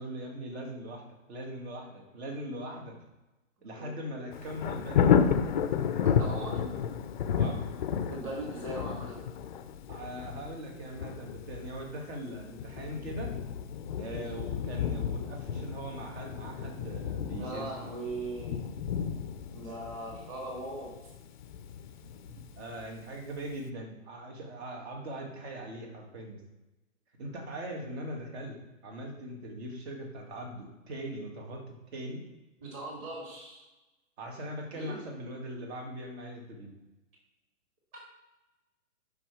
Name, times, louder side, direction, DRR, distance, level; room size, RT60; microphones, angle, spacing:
voice 1, 0.0-2.9 3.6-5.1 7.4-7.6 9.9-13.3 14.0-17.9 22.6-26.4 27.2-28.6 28.8-31.6 31.9-32.2 34.2-36.7, right 1 dB, 50° right, 2 dB, 2.0 m, -40 dB
Thunder, 4.3-23.1 23.5-23.6, left 7 dB, 40° left, 0.4 m, -32 dB
voice 2, 6.0-6.6 8.1-9.2 14.0-14.2 17.3-18.6 19.5-20.9 32.6-33.6 34.7-35.1, right 2 dB, 30° right, -2 dB, 2.6 m, -39 dB
5.9 x 5.5 x 4.8 m, 1.1 s
hypercardioid pair, 140°, 40 cm